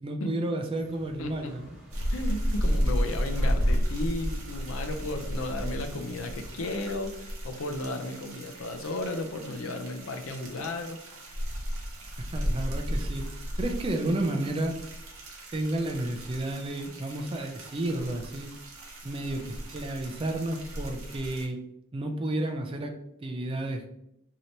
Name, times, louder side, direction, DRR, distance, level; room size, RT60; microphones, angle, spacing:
voice 1, 0.0-1.8 12.3-14.8 15.5-18.5 19.0-21.6 21.9-22.9 23.2-23.9, right 1 dB, 25° right, 4 dB, 0.3 m, -31 dB
sound 1, 0.7-6.7, equal, 10° right, 0.8 m, -51 dB
voice 2, 1.2-1.5 2.1-11.0, left 2 dB, 70° left, 5 dB, 0.4 m, -34 dB
sound 2, 1.9-21.5, equal, 70° right, 0.7 m, -33 dB
3.2 x 2.8 x 2.7 m, 0.78 s
head